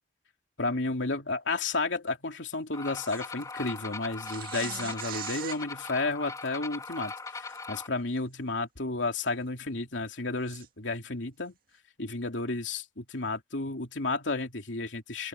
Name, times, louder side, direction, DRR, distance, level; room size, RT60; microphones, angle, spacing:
voice 1, 0.6-11.6 12.0-15.3, left 3 dB, 85° left, 2.9 m, -32 dB
sound 1, 2.7-7.9, left 3 dB, 20° left, 3.1 m, -40 dB
sound 2, 3.0-3.2 4.2-5.6 7.5-7.6 8.2-8.3 10.5-10.7, right 8 dB, 50° right, 2.1 m, -39 dB
head